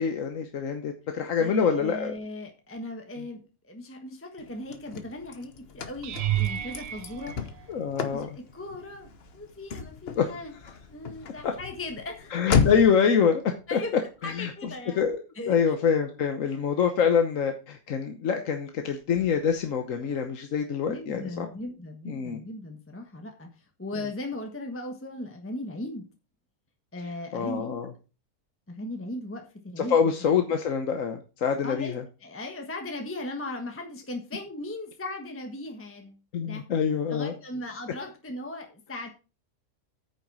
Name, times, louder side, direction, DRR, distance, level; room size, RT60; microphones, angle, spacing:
voice 1, 0.0-2.1 7.7-8.3 10.2-10.3 11.4-11.5 12.3-13.4 13.7-13.8 14.4-14.5 15.0-15.2 15.5-21.5 22.1-22.4 27.3-27.9 29.8-32.0 36.3-37.3, left 7 dB, 65° left, 5 dB, 1.3 m, -25 dB
voice 2, 1.4-7.7 8.1-10.5 10.9-12.3 13.7-13.9 14.2-15.0 15.3-15.7 20.9-26.1 26.9-27.8 28.7-30.1 31.6-36.7 37.1-39.1, left 1 dB, 10° left, 3 dB, 1.2 m, -38 dB
Car / Slam, 4.4-13.1, left 5 dB, 50° left, 1.1 m, -33 dB
sound 1, 6.0-8.3 9.0-9.4 9.8-10.0 14.3-14.4, right 13 dB, 60° right, 0.8 m, -32 dB
9.0 x 6.8 x 4.7 m, 0.33 s
omnidirectional pair, 1.5 m